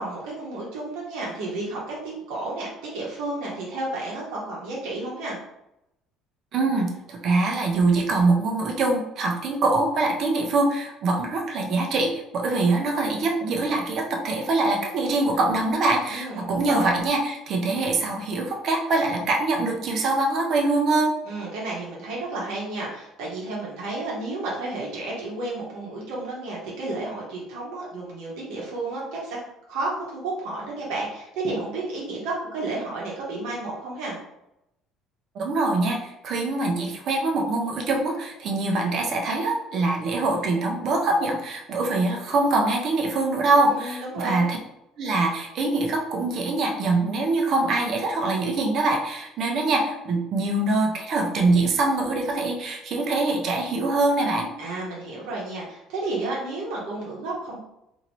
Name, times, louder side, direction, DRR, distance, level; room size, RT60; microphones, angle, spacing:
voice 1, 0.0-5.4 16.1-16.9 21.2-29.4 29.7-34.2 43.7-44.5 54.6-57.6, right 2 dB, 85° right, -4 dB, 0.9 m, -32 dB
voice 2, 6.5-21.1 35.3-44.6 45.0-54.5, right 2 dB, 50° right, 1 dB, 0.6 m, -24 dB
2.8 x 2.6 x 2.9 m, 0.84 s
cardioid pair, 130°, 0 cm